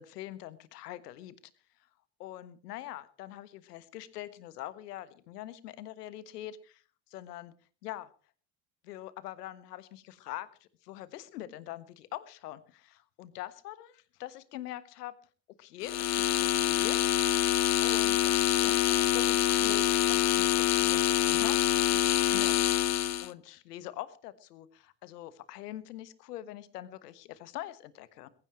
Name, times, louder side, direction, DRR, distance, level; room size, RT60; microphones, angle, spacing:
voice 1, 0.0-1.3 2.2-6.8 7.1-7.5 7.8-8.1 8.8-15.1 15.6-17.0 17.8-28.3, left 14 dB, 70° left, 16 dB, 1.4 m, -43 dB
sound 1, 15.8-23.3, left 12 dB, 35° left, 0.8 m, -26 dB
21.0 x 16.0 x 3.0 m, 0.39 s
figure-of-eight pair, 55°, 49 cm